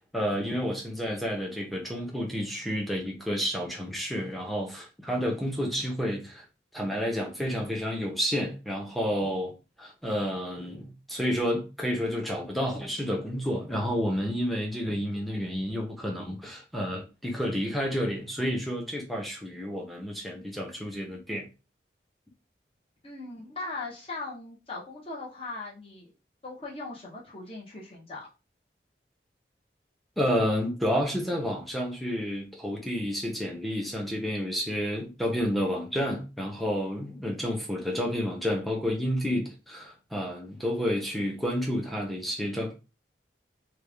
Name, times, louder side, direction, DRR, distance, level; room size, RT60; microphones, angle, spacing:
voice 1, 0.1-6.4 6.7-21.5 30.2-42.7, equal, ahead, 0.8 m, -30 dB
voice 2, 23.0-26.1 26.4-28.3, left 3 dB, 30° left, 1.1 m, -39 dB
3.4 x 2.4 x 3.4 m
head